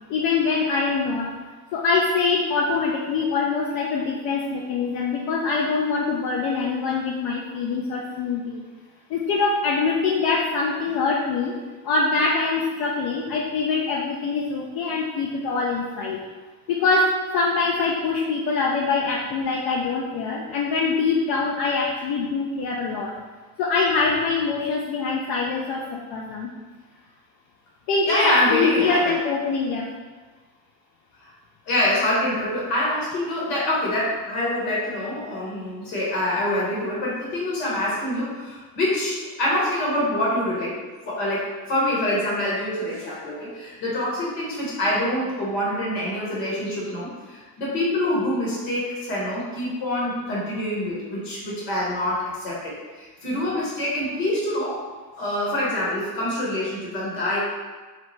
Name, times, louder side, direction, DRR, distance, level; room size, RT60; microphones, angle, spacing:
voice 1, 0.1-1.3 1.7-8.6 9.1-11.5 11.8-16.2 16.7-23.1 23.6-26.5 27.9-29.9, left 4 dB, 50° left, -3 dB, 0.5 m, -24 dB
voice 2, 28.0-29.1 31.2-31.3 31.7-40.7 41.0-52.7 53.0-54.8 55.1-57.4, left 1 dB, 70° left, -6 dB, 1.3 m, -25 dB
2.8 x 2.0 x 3.1 m, 1.3 s
hypercardioid pair, 65°, 47 cm